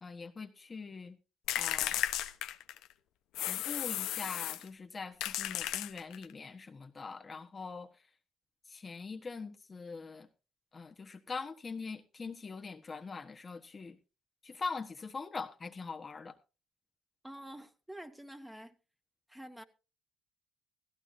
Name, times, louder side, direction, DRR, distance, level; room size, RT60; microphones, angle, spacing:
voice 1, 0.0-1.2 1.5-2.0 3.5-7.9 8.7-10.3 10.7-14.0 14.4-16.3, left 4 dB, 35° left, 1.3 m, -42 dB
sound 1, 1.5-2.9 3.3-4.7 5.2-6.3, left 13 dB, 80° left, 0.9 m, -34 dB
voice 2, 17.2-18.7 19.3-19.6, right 1 dB, 5° right, 1.9 m, -48 dB
16.0 x 14.5 x 2.7 m
supercardioid pair, 65°, 0 cm